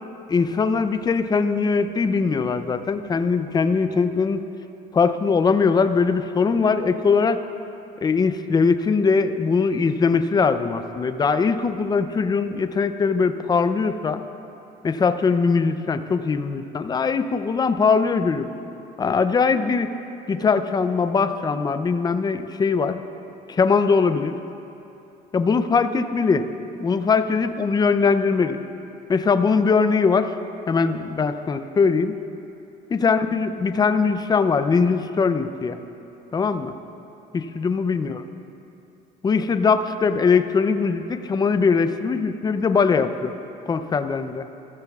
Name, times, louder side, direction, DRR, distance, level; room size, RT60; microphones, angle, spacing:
voice 1, 0.3-4.4 4.9-7.4 8.0-14.2 14.8-18.5 19.0-19.9 20.3-23.0 23.5-24.3 25.3-26.5 26.8-28.6 29.1-30.3 30.7-32.1 32.9-35.8 36.3-36.7 37.3-38.2 39.2-43.3 43.7-44.5, left 5 dB, 25° left, 10 dB, 0.5 m, -21 dB
14.5 x 14.0 x 2.4 m, 2.8 s
cardioid pair, 110°, 17 cm